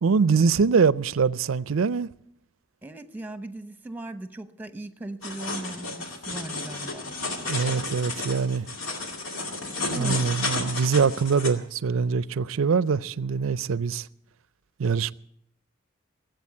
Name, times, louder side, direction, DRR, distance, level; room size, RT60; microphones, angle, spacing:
voice 1, 0.0-2.1 7.5-8.7 9.9-14.1 14.8-15.1, right 5 dB, 85° right, 0.5 m, -23 dB
voice 2, 2.8-7.2 9.9-10.3, right 2 dB, 10° right, 0.9 m, -38 dB
sound 1, 5.2-11.5, left 3 dB, 85° left, 2.2 m, -32 dB
18.0 x 8.1 x 8.4 m
head